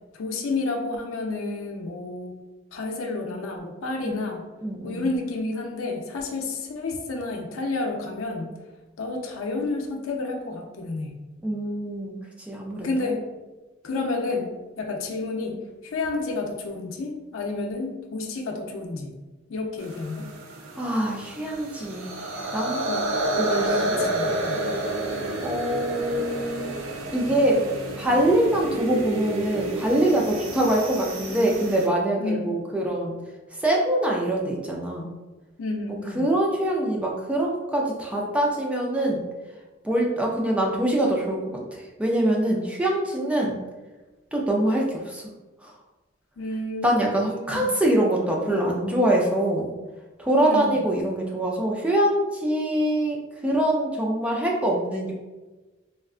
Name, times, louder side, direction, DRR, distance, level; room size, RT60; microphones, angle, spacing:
voice 1, 0.1-2.4 2.7-4.4 4.8-8.5 9.0-11.2 12.8-13.2 13.8-19.1 19.5-20.3 22.9-24.7 32.2-32.6 35.6-36.3 46.4-47.7 50.4-50.7, left 3 dB, 90° left, 2 dB, 0.5 m, -30 dB
voice 2, 4.6-5.1 11.4-12.2 12.5-13.1 20.8-22.9 23.4-24.0 25.4-26.7 27.1-27.7 28.0-33.2 33.6-35.1 36.2-39.2 39.8-41.4 41.7-43.6 44.3-45.2 45.6-45.7 46.8-49.7 50.2-55.1, right 1 dB, 5° right, -2 dB, 0.4 m, -24 dB
sound 1, 19.8-31.9, right 1 dB, 75° right, 0.5 m, -30 dB
3.6 x 2.2 x 2.4 m, 1.2 s
head